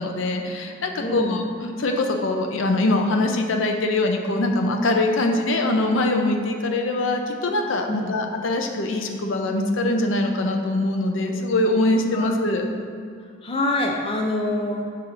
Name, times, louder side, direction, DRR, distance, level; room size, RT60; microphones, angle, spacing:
voice 1, 0.0-12.6, left 2 dB, 70° left, 4 dB, 0.6 m, -23 dB
voice 2, 1.0-1.5 7.9-8.2 12.1-12.3 13.4-14.9, left 1 dB, 30° left, 1 dB, 0.4 m, -25 dB
6.4 x 4.1 x 3.9 m, 2.4 s
head